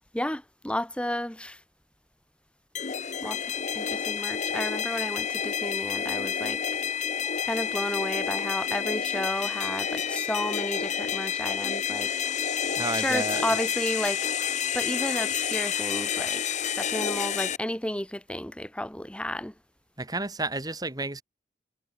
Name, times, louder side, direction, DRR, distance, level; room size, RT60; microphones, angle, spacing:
voice 1, 0.1-1.6 3.2-3.4 3.7-6.8 7.4-12.1 12.9-14.2 14.7-16.4 16.7-19.5, left 1 dB, 5° left, 1.7 m, -32 dB
sound 1, 2.7-17.6, left 8 dB, 45° left, 0.8 m, -29 dB
voice 2, 12.8-13.4 20.0-21.2, right 2 dB, 20° right, 2.5 m, -31 dB
head